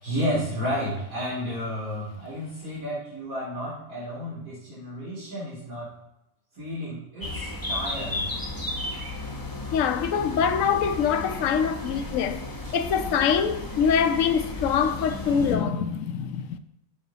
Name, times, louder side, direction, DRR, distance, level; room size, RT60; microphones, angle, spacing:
voice 1, 0.0-5.9 6.5-8.2 12.6-12.8, equal, 85° right, 3.2 m, -32 dB
sound 1, 7.2-15.6, left 2 dB, 20° left, 0.8 m, -34 dB
voice 2, 9.7-12.5 12.7-16.6, left 7 dB, 70° left, 0.9 m, -24 dB
10.5 x 6.1 x 2.8 m
omnidirectional pair, 1.5 m